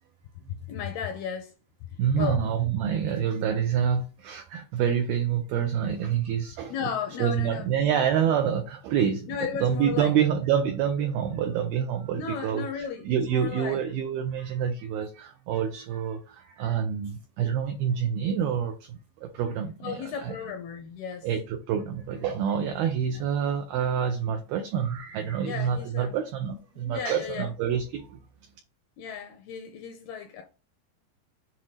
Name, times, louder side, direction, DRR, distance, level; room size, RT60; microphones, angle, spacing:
voice 1, 0.7-1.5 2.1-2.5 6.7-7.7 9.3-10.1 12.1-13.8 19.8-21.3 23.1-23.3 25.4-26.2 26.7-27.5 29.0-30.4, left 7 dB, 75° left, 2.4 m, -35 dB
voice 2, 2.0-6.7 7.2-9.3 9.6-20.4 21.2-28.2, right 8 dB, 75° right, 2.3 m, -27 dB
7.6 x 3.0 x 4.1 m
omnidirectional pair, 5.1 m